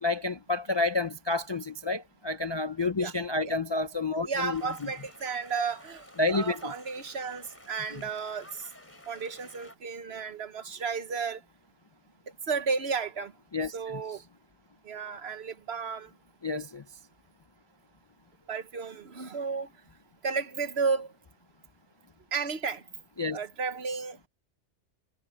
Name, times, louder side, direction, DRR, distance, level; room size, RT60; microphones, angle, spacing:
voice 1, 0.0-4.9 6.2-6.7 7.9-8.0 13.5-13.7 16.4-16.8 23.2-23.4, left 3 dB, 35° left, 0.4 m, -29 dB
voice 2, 4.2-8.7 9.1-11.4 12.5-13.3 13.7-14.2 14.8-16.1 18.5-19.7 20.2-21.1 22.3-22.8 23.3-24.3, right 5 dB, 60° right, 1.4 m, -33 dB
sound 1, 4.5-9.8, left 1 dB, 10° left, 3.0 m, -52 dB
omnidirectional pair, 1.3 m